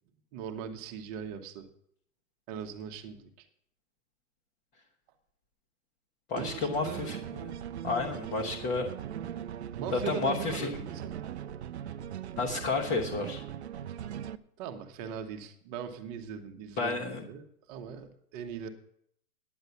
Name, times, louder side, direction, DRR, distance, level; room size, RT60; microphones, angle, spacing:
voice 1, 0.3-1.7 2.5-3.4 6.3-7.2 9.8-11.2 14.6-18.7, right 7 dB, 25° right, 6 dB, 1.2 m, -40 dB
voice 2, 6.3-7.5 7.8-8.9 9.9-10.8 12.4-13.4 16.8-17.2, left 4 dB, 20° left, -2 dB, 1.1 m, -31 dB
sound 1, 6.4-14.4, right 9 dB, 45° right, 0.6 m, -40 dB
9.8 x 7.8 x 8.2 m, 0.69 s
hypercardioid pair, 140°, 46 cm